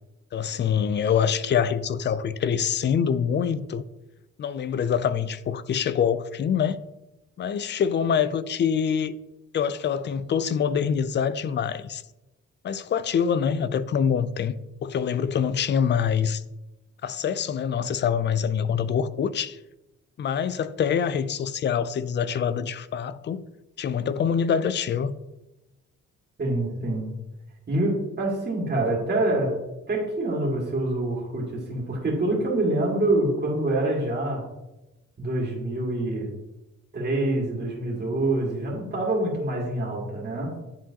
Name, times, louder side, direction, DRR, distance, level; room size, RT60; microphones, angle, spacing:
voice 1, 0.3-3.8 4.4-6.8 7.4-9.1 9.5-12.0 12.6-14.6 14.8-16.4 17.0-19.6 20.2-23.5 23.8-25.1, left 7 dB, 40° left, 0.4 m, -25 dB
voice 2, 26.4-27.1 27.7-29.5 29.9-34.4 35.2-36.3 36.9-40.5, right 2 dB, 35° right, 2.0 m, -26 dB
10.0 x 3.8 x 2.8 m
cardioid pair, 90°, 30 cm